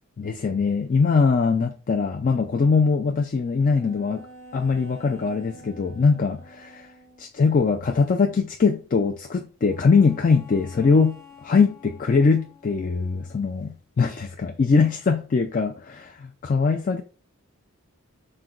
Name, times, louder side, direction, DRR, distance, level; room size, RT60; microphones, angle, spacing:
voice 1, 0.2-4.3 4.5-6.9 7.2-17.0, left 4 dB, 40° left, 0.3 m, -22 dB
sound 1, 3.6-7.3 9.7-13.6, left 1 dB, 15° left, 0.8 m, -48 dB
5.7 x 2.2 x 3.7 m
head